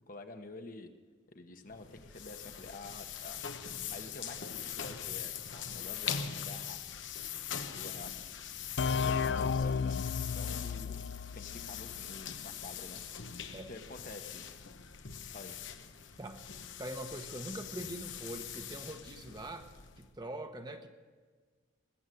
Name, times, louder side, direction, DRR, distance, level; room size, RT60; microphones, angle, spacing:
voice 1, 0.1-0.9 1.3-3.4 3.9-6.8 7.4-8.2 9.0-11.0 11.3-14.5 15.3-15.5, left 2 dB, 45° left, 6 dB, 1.2 m, -49 dB
sound 1, 1.7-20.1, left 8 dB, 85° left, 1.0 m, -42 dB
sound 2, 8.8-12.3, left 6 dB, 65° left, 0.3 m, -33 dB
voice 2, 16.8-20.9, right 1 dB, 20° right, 6 dB, 1.0 m, -43 dB
20.0 x 8.1 x 7.8 m, 1.5 s
head